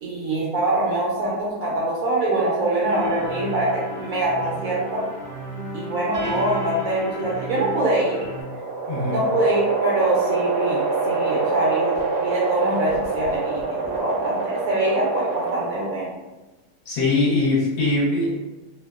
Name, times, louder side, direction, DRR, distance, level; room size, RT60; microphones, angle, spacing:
voice 1, 0.0-5.0 5.7-8.2 9.1-11.9 12.2-13.6 13.9-16.1, right 2 dB, 70° right, -5 dB, 0.9 m, -24 dB
sound 1, 2.9-8.4, left 1 dB, 45° right, 0.6 m, -32 dB
sound 2, 8.1-16.0, right 3 dB, 90° right, 1.2 m, -26 dB
voice 2, 8.9-9.2 16.9-18.4, left 2 dB, 65° left, -5 dB, 1.0 m, -21 dB
2.8 x 2.0 x 2.2 m, 1.1 s
omnidirectional pair, 1.8 m